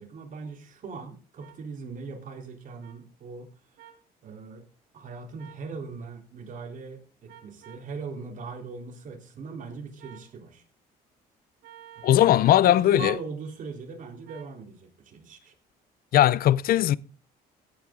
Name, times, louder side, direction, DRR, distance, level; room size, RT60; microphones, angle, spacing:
voice 1, 0.0-3.5 4.2-4.6 4.9-10.6 12.0-12.1 12.4-15.5, right 4 dB, 50° right, 3.9 m, -40 dB
sound 1, 1.4-1.6 2.8-2.9 3.8-4.0 5.4-5.7 7.3-7.9 10.0-10.3 11.6-12.5 14.2-14.5, right 10 dB, 75° right, 3.0 m, -50 dB
voice 2, 12.0-13.2 16.1-17.0, left 12 dB, 60° left, 0.6 m, -19 dB
17.0 x 9.0 x 3.8 m
cardioid pair, 110°, 17 cm